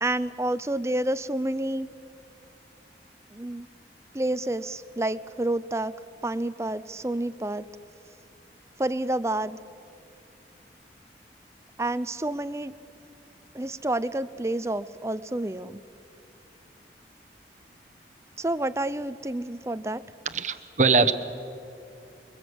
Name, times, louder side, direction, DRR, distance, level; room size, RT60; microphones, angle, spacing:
voice 1, 0.0-1.9 3.3-3.7 4.1-5.9 6.2-7.7 8.8-9.6 11.8-12.7 13.5-15.8 18.4-20.0, right 1 dB, 15° right, 15 dB, 0.5 m, -29 dB
voice 2, 20.3-21.1, right 4 dB, 40° right, 9 dB, 0.9 m, -21 dB
29.5 x 22.5 x 8.0 m, 2.5 s
head